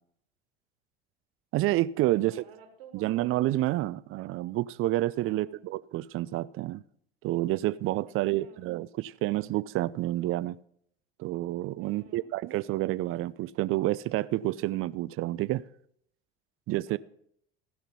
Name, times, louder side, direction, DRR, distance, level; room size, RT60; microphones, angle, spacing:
voice 1, 1.5-2.4 2.9-6.8 7.2-10.6 11.2-15.6 16.7-17.0, right 16 dB, 45° right, 0.5 m, -29 dB
voice 2, 2.1-3.3 5.2-5.6 8.1-8.7 11.8-12.3 16.9-17.0, right 7 dB, 80° right, 2.0 m, -53 dB
15.5 x 5.8 x 5.5 m
hypercardioid pair, 75°, 30 cm